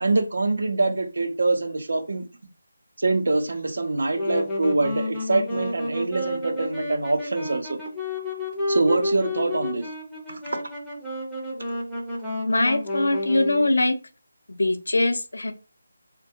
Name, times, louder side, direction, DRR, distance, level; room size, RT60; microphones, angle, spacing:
voice 1, 0.0-2.3 3.0-7.8 8.7-9.9 10.3-10.6, right 3 dB, 65° right, 0.6 m, -24 dB
Wind instrument woodwind instrument, 4.0-13.7, left 1 dB, ahead, 0.6 m, -31 dB
voice 2, 12.5-13.9 14.5-15.5, left 2 dB, 85° left, 0.5 m, -22 dB
3.4 x 2.2 x 2.7 m
figure-of-eight pair, 175°, 0 cm